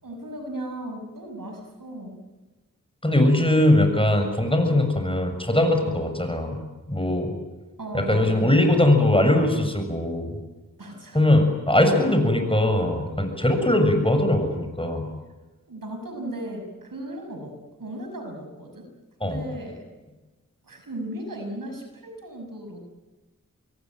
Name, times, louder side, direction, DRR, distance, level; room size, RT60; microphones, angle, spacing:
voice 1, 0.0-2.2 5.8-6.2 7.8-8.7 10.8-11.2 13.4-13.5 15.7-18.9 19.2-19.8 20.6-22.8, right 1 dB, 80° right, 4 dB, 6.1 m, -36 dB
voice 2, 3.0-6.6 6.9-7.4 7.9-10.4 11.1-15.1 19.2-19.4, left 1 dB, 15° left, 6 dB, 7.0 m, -21 dB
26.0 x 22.5 x 9.3 m, 1.2 s
cardioid pair, 40°, 33 cm